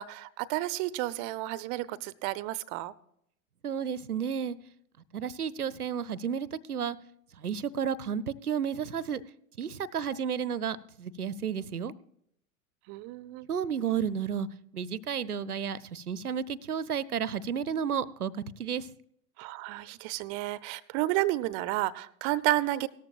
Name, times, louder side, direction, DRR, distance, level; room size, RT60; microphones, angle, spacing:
voice 1, 0.0-2.9 12.9-13.5 19.4-22.9, right 17 dB, 30° right, 18 dB, 0.4 m, -31 dB
voice 2, 3.6-4.6 5.1-7.0 7.4-9.2 9.6-11.9 13.5-14.5 14.7-18.9, right 7 dB, 90° right, 19 dB, 0.6 m, -32 dB
17.0 x 13.5 x 2.4 m, 0.73 s
figure-of-eight pair, 90°, 44 cm